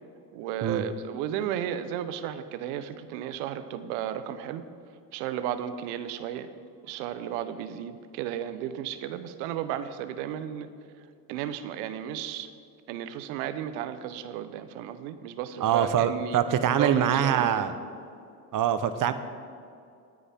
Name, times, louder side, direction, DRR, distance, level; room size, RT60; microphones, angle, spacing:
voice 1, 0.3-4.6 5.1-6.5 6.8-10.7 11.3-12.5 12.9-16.4 16.8-17.7, right 10 dB, 70° right, 12 dB, 1.1 m, -34 dB
voice 2, 15.6-17.7 18.5-19.1, right 9 dB, 40° right, 11 dB, 1.0 m, -24 dB
18.5 x 9.8 x 3.7 m, 2.5 s
hypercardioid pair, 80°, 48 cm